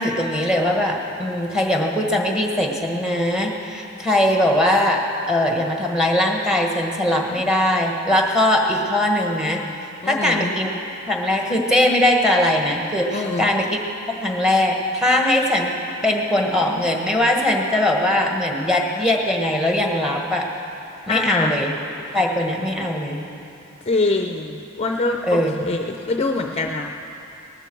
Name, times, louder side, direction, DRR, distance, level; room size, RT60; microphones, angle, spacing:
voice 1, 0.0-5.0 5.3-9.6 10.1-10.7 11.1-13.8 14.2-15.8 16.0-20.5 21.1-21.7 22.1-23.2 25.3-25.7, left 1 dB, 5° right, 1 dB, 1.4 m, -20 dB
voice 2, 10.0-10.5 13.1-13.6 21.1-21.5 22.1-22.2 23.8-26.9, left 3 dB, 30° left, 3 dB, 0.6 m, -24 dB
19.0 x 14.0 x 4.6 m, 2.7 s
head